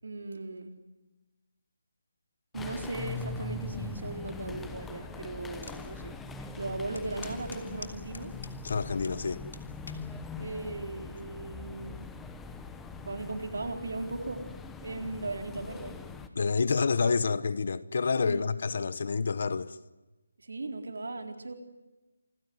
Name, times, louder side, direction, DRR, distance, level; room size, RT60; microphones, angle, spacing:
voice 1, 0.0-0.7 2.5-8.3 10.4-12.0 13.0-14.4 14.8-16.0 18.2-18.5 20.4-21.5, right 2 dB, 65° right, 4.1 m, -37 dB
sound 1, 2.5-16.3, left 4 dB, 5° left, 0.8 m, -42 dB
sound 2, 5.6-5.8 6.3-6.4 7.0-9.2 9.5-10.1 10.8-11.1, left 3 dB, 90° left, 3.0 m, -46 dB
voice 2, 8.6-9.4 16.3-19.8, left 4 dB, 40° left, 1.0 m, -28 dB
27.5 x 16.5 x 9.6 m
hypercardioid pair, 175°, 0 cm